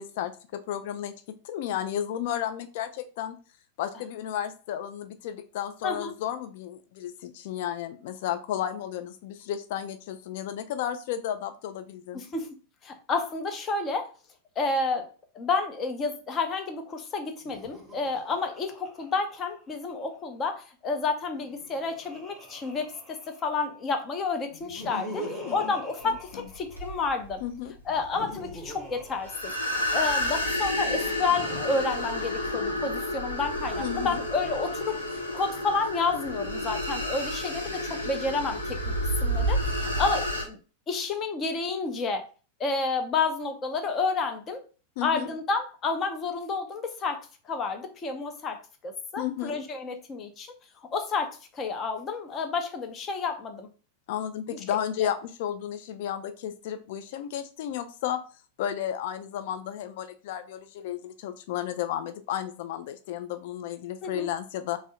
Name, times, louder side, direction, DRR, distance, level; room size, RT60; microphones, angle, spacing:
voice 1, 0.0-3.4 3.8-12.2 25.2-25.7 26.0-26.4 27.4-27.7 33.8-34.2 45.0-45.3 49.2-49.6 54.1-58.2 58.6-64.8, left 10 dB, 50° left, 9 dB, 0.3 m, -33 dB
voice 2, 5.8-6.1 12.1-12.5 12.8-14.1 14.6-15.1 15.3-27.4 27.9-29.5 29.9-35.0 35.3-38.8 39.2-40.6 40.9-42.3 42.6-44.6 45.0-53.7 54.5-54.6 55.0-55.1 64.0-64.3, left 4 dB, 25° left, 6 dB, 0.7 m, -30 dB
Laughter, 17.4-20.2 21.2-23.8 24.5-27.2 27.9-30.3 31.1-33.3, right 1 dB, 5° right, 0.9 m, -44 dB
sound 1, 26.0-40.4, equal, 90° left, 0.9 m, -30 dB
3.5 x 2.1 x 4.0 m, 0.36 s
figure-of-eight pair, 90°, 0 cm